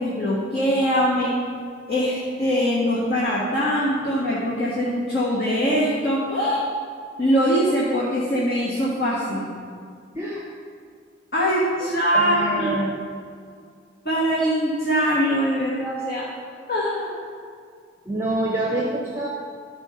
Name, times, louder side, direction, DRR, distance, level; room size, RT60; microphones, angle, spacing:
voice 1, 0.0-1.3 1.9-6.6 7.2-9.5 11.3-12.7 14.0-16.3 16.7-17.2, equal, 50° left, -6 dB, 1.5 m, -22 dB
voice 2, 10.1-10.5 11.8-11.9 12.1-13.0 18.0-19.3, right 1 dB, 15° right, -2 dB, 0.8 m, -26 dB
13.0 x 4.5 x 5.5 m, 2.2 s
head